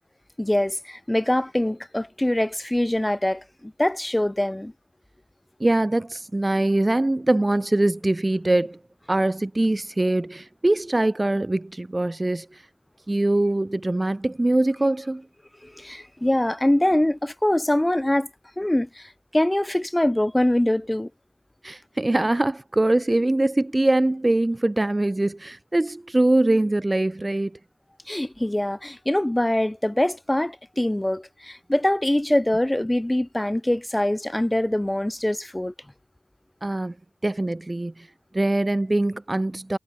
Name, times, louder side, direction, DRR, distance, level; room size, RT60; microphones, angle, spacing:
voice 1, 0.4-4.7 15.6-18.3 18.6-21.1 28.1-35.7, left 1 dB, 15° left, 4.0 m, -23 dB
voice 2, 5.6-8.8 9.1-12.6 13.1-15.2 21.6-27.6 36.6-36.9 37.2-38.1 38.3-39.8, right 2 dB, 25° right, 0.6 m, -23 dB
wide cardioid pair, 75°, 0 cm